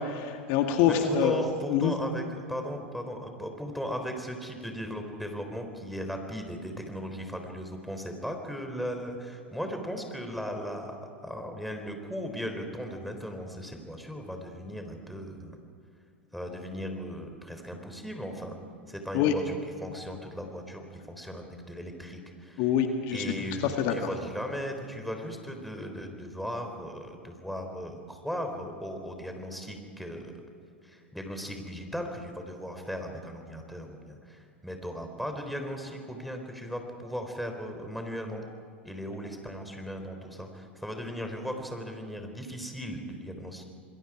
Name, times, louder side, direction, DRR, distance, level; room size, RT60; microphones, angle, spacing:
voice 1, 0.0-1.3 1.7-1.9 19.1-19.3 22.6-23.2 23.8-23.9, left 9 dB, 55° left, 4 dB, 2.0 m, -25 dB
voice 2, 0.9-11.0 11.2-15.6 16.3-18.6 18.9-22.7 23.1-30.3 30.8-38.4 38.8-43.6, equal, ahead, 4 dB, 3.8 m, -37 dB
27.5 x 21.5 x 5.0 m, 2.5 s
hypercardioid pair, 95°, 6 cm